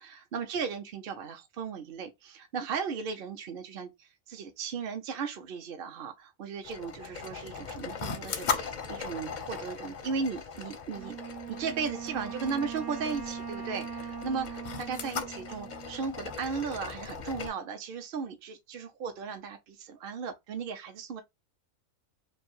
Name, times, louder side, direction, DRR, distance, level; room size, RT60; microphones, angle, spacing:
voice 1, 0.0-11.2 11.6-21.2, right 5 dB, 55° right, 0.6 m, -36 dB
sound 1, 6.6-17.5, left 5 dB, 55° left, 0.5 m, -39 dB
Wind instrument woodwind instrument, 10.9-16.4, right 7 dB, 90° right, 1.4 m, -41 dB
3.2 x 2.6 x 4.4 m
omnidirectional pair, 1.5 m